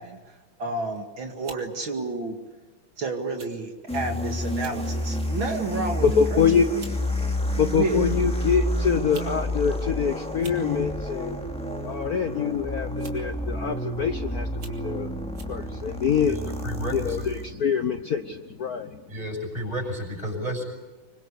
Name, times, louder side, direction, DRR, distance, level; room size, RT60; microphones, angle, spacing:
voice 1, 0.0-2.4 3.0-6.8 7.7-8.1, right 3 dB, 65° right, 4 dB, 2.9 m, -31 dB
sound 1, 0.8-1.0 1.4-1.7 2.5-2.7 3.4-3.5 3.8-4.0 4.5-4.8 5.3-5.6 6.4-6.5 6.8-7.0 8.1-8.2 8.9-9.3 9.6-9.7 10.3-10.6 11.9-12.2 13.0-13.3 13.9-14.0 14.5-14.8 15.3-15.6, right 4 dB, 50° right, 3.1 m, -46 dB
sound 2, 3.9-17.5, left 1 dB, 5° left, 2.5 m, -30 dB
voice 2, 6.0-6.7 7.6-11.4 11.8-15.2 15.5-16.4 16.9-19.0, left 6 dB, 50° left, 8 dB, 1.3 m, -25 dB
voice 3, 16.3-17.3 19.1-20.6, equal, 15° right, 3 dB, 6.8 m, -32 dB
26.0 x 24.0 x 8.3 m, 1.3 s
omnidirectional pair, 2.4 m